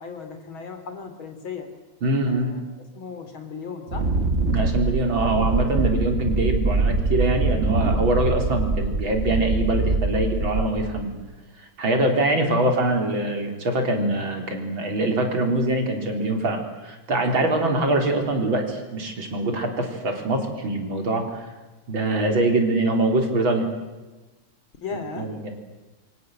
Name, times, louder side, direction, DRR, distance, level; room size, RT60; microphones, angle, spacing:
voice 1, 0.0-1.7 2.3-4.1 12.3-12.6 17.4-17.9 24.8-25.4, left 5 dB, 85° left, 8 dB, 3.9 m, -37 dB
voice 2, 2.0-2.5 4.5-11.1 11.6-21.5 21.9-23.7 25.2-25.5, right 2 dB, 75° right, 3 dB, 4.7 m, -23 dB
Wind, 3.9-11.0, right 2 dB, 35° right, 2.0 m, -24 dB
27.5 x 24.5 x 8.0 m, 1.1 s
omnidirectional pair, 2.2 m